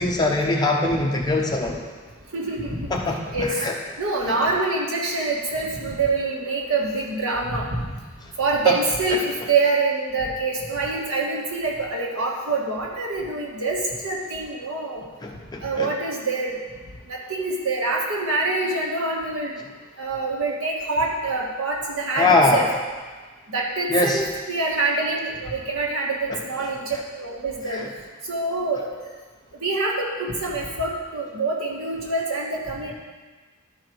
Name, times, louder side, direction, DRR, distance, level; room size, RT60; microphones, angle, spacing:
voice 1, 0.0-1.8 2.9-3.2 3.6-3.7 4.3-4.4 8.6-8.8 15.2-15.9 22.2-22.7 23.9-24.2 27.7-27.9, left 2 dB, 20° left, 0 dB, 1.0 m, -22 dB
voice 2, 2.3-2.9 3.3-3.5 4.0-7.8 8.4-15.0 15.6-16.5 17.1-19.6 20.0-22.7 23.5-24.2 24.5-27.8 28.3-28.9 29.6-32.9, right 3 dB, 85° right, -2 dB, 1.6 m, -25 dB
12.0 x 4.9 x 4.6 m, 1.4 s
head